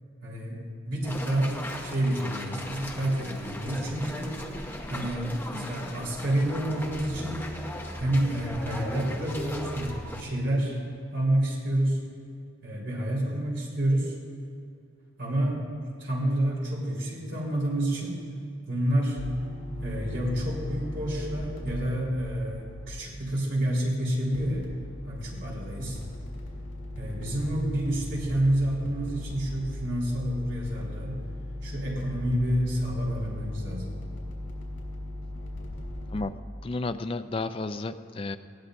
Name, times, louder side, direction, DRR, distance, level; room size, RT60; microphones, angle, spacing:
voice 1, 0.2-4.3 4.9-7.4 8.0-10.8 11.1-12.0 12.6-14.1 15.2-15.6 16.0-18.2 18.7-19.2 19.7-24.7 25.1-26.0 27.0-31.2 31.6-33.9, right 1 dB, 60° right, -5 dB, 3.9 m, -29 dB
sound 1, 1.0-10.2, left 1 dB, 10° left, 0.8 m, -37 dB
sound 2, 19.2-22.9 24.3-36.2, left 1 dB, 80° left, 3.4 m, -38 dB
voice 2, 36.1-38.4, left 3 dB, 25° left, 10 dB, 0.4 m, -32 dB
19.0 x 16.0 x 2.6 m, 2.5 s
head